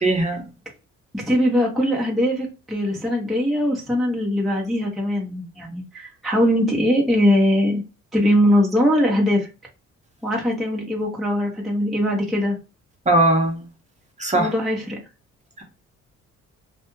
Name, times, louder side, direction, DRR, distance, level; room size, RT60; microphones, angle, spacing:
voice 1, 0.0-0.5 13.1-13.7 14.2-14.5, right 2 dB, 25° right, 0.9 m, -19 dB
voice 2, 1.1-7.8 8.1-9.5 10.2-12.6 14.3-15.0, equal, ahead, 0.8 m, -21 dB
2.4 x 2.3 x 3.0 m
cardioid pair, 90°, 30 cm